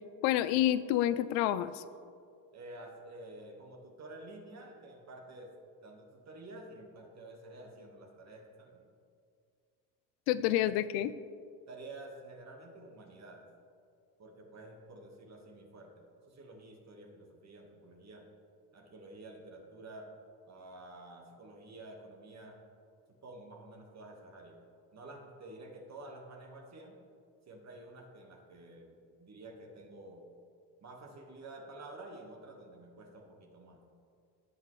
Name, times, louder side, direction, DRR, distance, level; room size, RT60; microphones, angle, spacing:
voice 1, 0.2-1.8 10.3-11.1, left 13 dB, 85° left, 15 dB, 0.5 m, -28 dB
voice 2, 2.5-5.5 5.8-8.9 11.7-13.5 14.2-18.2 18.7-20.1 20.5-22.6 23.1-24.6 24.9-27.0 27.5-30.3 30.8-33.9, right 2 dB, 35° right, 1 dB, 1.5 m, -50 dB
17.0 x 5.8 x 3.1 m, 2.3 s
supercardioid pair, 105°, 45 cm